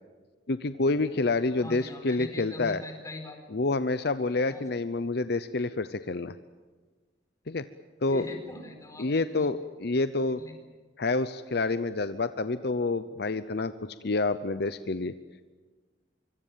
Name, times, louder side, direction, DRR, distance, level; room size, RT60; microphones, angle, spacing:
voice 1, 0.5-2.8 3.5-6.3 7.5-7.6 8.0-8.3 9.0-10.4 11.0-13.7 14.0-15.1, left 3 dB, 60° left, 12 dB, 0.7 m, -28 dB
voice 2, 1.6-3.4 4.5-4.6 8.1-9.5 10.3-10.5, left 2 dB, 20° left, 4 dB, 4.8 m, -41 dB
25.0 x 24.5 x 7.5 m, 1.4 s
head